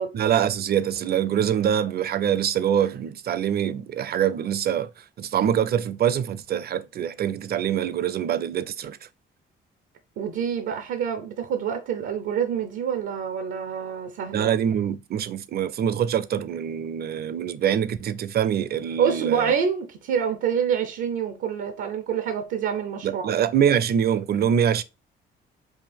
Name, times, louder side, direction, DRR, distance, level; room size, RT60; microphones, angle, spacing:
voice 1, 0.1-4.9 5.2-9.0 14.3-19.5 23.0-24.8, right 9 dB, 50° right, 0.5 m, -24 dB
voice 2, 10.2-14.5 19.0-23.3, right 7 dB, 90° right, 0.7 m, -27 dB
5.6 x 2.5 x 3.4 m
cardioid pair, 90°, 20 cm